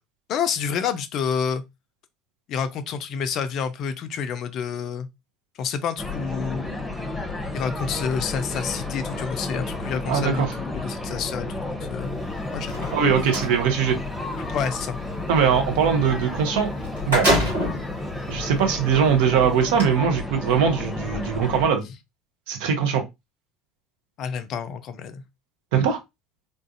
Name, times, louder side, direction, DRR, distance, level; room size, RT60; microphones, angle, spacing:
voice 1, 0.3-1.6 2.5-5.1 5.6-6.7 7.5-12.2 12.5-12.9 14.5-15.0 24.2-25.2, left 7 dB, 45° left, 0.4 m, -29 dB
sound 1, 6.0-21.7, left 2 dB, 10° left, 0.9 m, -32 dB
voice 2, 10.1-10.5 12.9-14.0 15.3-16.7 17.1-17.3 18.3-21.8 22.5-23.0 25.7-26.0, right 7 dB, 60° right, 0.7 m, -21 dB
sound 2, 12.6-13.5 16.4-16.5 16.8-17.9 18.6-18.7 19.6-19.8, equal, 75° right, 1.9 m, -24 dB
3.7 x 2.5 x 2.5 m
figure-of-eight pair, 65°, 0 cm